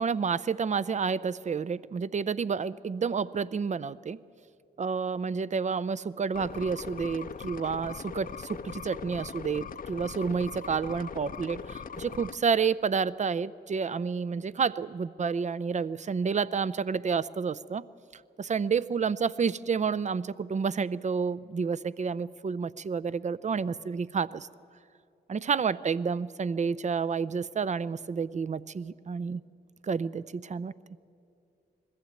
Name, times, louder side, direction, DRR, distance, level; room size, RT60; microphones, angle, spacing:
voice 1, 0.0-4.2 4.8-17.8 18.4-24.5 25.3-29.4 29.9-30.7, right 5 dB, 40° right, 18 dB, 0.5 m, -30 dB
sound 1, 6.3-12.4, left 6 dB, 50° left, 0.7 m, -40 dB
21.0 x 15.0 x 8.9 m, 2.5 s
cardioid pair, 55°, 18 cm